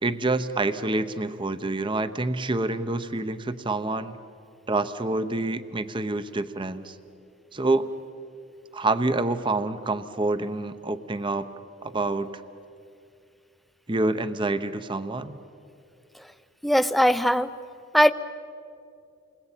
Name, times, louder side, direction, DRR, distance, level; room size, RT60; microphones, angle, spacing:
voice 1, 0.0-4.2 4.7-7.0 7.5-7.9 8.7-11.5 11.8-12.4 13.9-15.4, right 2 dB, 25° right, 11 dB, 0.8 m, -27 dB
voice 2, 16.6-17.5 17.9-18.1, equal, ahead, 11 dB, 0.6 m, -19 dB
28.5 x 20.5 x 9.0 m, 2.5 s
head